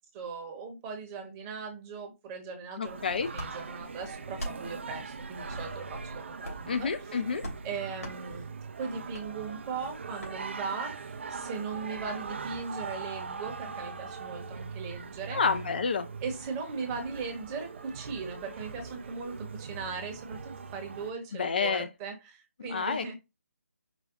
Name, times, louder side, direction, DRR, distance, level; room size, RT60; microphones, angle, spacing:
voice 1, 0.1-3.0 3.3-7.2 7.6-15.4 16.2-23.1, right 5 dB, 20° right, 1.0 m, -38 dB
voice 2, 2.8-3.3 6.7-7.4 15.3-16.1 21.3-21.9 22.7-23.1, left 5 dB, 40° left, 0.4 m, -29 dB
Singing, 2.9-21.1, right 5 dB, 50° right, 0.5 m, -41 dB
sound 1, 3.3-3.5 4.3-4.6 5.5-5.7 6.4-6.7 7.4-7.6 8.0-8.2 9.1-9.3 10.2-10.3, equal, 80° left, 2.7 m, -39 dB
5.0 x 2.3 x 3.7 m
figure-of-eight pair, 145°, 8 cm